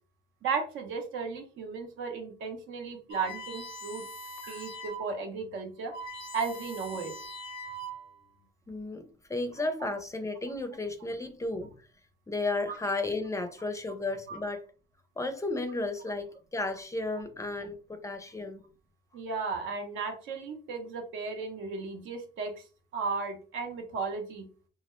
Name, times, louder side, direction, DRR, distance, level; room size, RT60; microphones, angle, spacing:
voice 1, 0.4-4.1 4.5-5.9 6.3-7.1 14.3-14.4 19.1-22.6 22.9-24.5, right 4 dB, 80° right, 0.7 m, -35 dB
sound 1, 3.1-5.1 5.5-5.6 5.8-8.2, right 1 dB, 85° left, 0.5 m, -42 dB
voice 2, 8.7-11.7 12.3-14.6 15.2-18.6, left 2 dB, 15° left, 0.4 m, -33 dB
2.3 x 2.0 x 2.9 m
cardioid pair, 90°, 20 cm